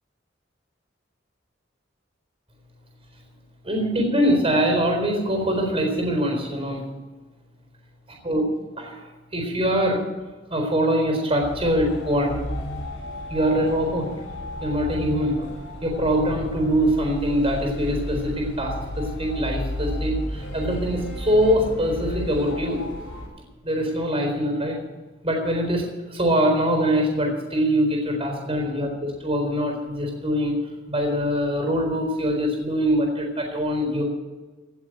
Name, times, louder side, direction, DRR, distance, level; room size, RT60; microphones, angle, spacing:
voice 1, 3.6-6.8 8.2-8.5 8.8-9.0 9.3-10.0 10.5-12.4 13.3-14.1 14.6-15.5 15.8-22.8 23.6-24.8 25.2-30.6 30.9-34.0, equal, 30° right, 2 dB, 4.2 m, -23 dB
sound 1, 11.4-23.3, left 1 dB, 90° left, 5.9 m, -33 dB
17.0 x 7.7 x 7.8 m, 1.3 s
head